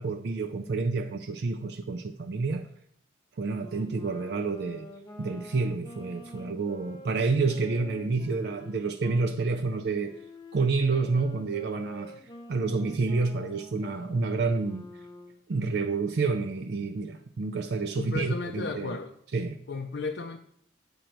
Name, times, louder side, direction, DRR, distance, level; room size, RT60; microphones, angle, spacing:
voice 1, 0.0-2.7 3.4-4.9 5.2-10.2 10.5-12.2 12.5-14.8 15.5-18.9 19.3-19.6, right 4 dB, 60° right, 0.4 m, -29 dB
Wind instrument woodwind instrument, 3.5-9.3 10.0-15.4, left 1 dB, 25° left, 0.7 m, -47 dB
voice 2, 18.0-19.1 19.7-20.4, left 3 dB, 75° left, 0.5 m, -34 dB
8.9 x 5.2 x 4.5 m
head